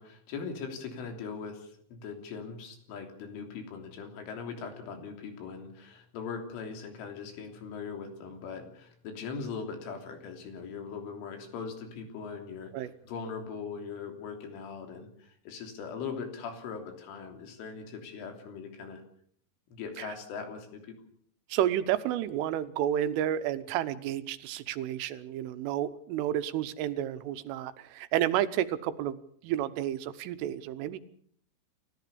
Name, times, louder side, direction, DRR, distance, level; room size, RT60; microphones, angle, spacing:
voice 1, 0.0-19.0 19.7-21.0, left 5 dB, 75° left, 4 dB, 5.7 m, -40 dB
voice 2, 21.5-29.2 29.4-31.0, right 11 dB, 85° right, 12 dB, 3.6 m, -31 dB
28.5 x 14.5 x 7.0 m, 0.63 s
omnidirectional pair, 5.6 m